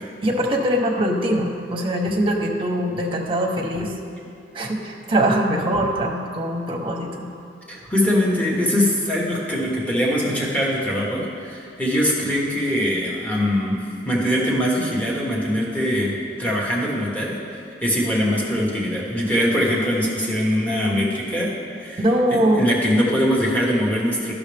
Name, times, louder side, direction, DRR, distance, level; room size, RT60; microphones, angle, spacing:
voice 1, 0.2-3.9 4.5-7.3 22.0-22.7, right 1 dB, 30° right, 1 dB, 0.9 m, -22 dB
voice 2, 7.7-21.5 21.8-22.0 22.3-24.3, equal, 10° left, -4 dB, 1.2 m, -22 dB
11.5 x 6.1 x 3.4 m, 2.6 s
head